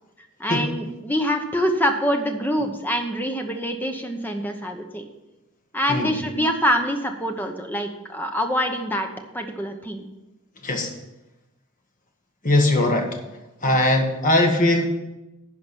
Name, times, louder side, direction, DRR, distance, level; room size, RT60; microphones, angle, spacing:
voice 1, 0.4-5.0 5.7-9.1 9.3-10.1 13.6-13.8, equal, 10° left, 4 dB, 0.9 m, -25 dB
voice 2, 10.6-10.9 12.4-13.2 13.6-14.9, left 1 dB, 35° left, 3 dB, 1.4 m, -20 dB
11.0 x 4.8 x 7.5 m, 0.99 s
head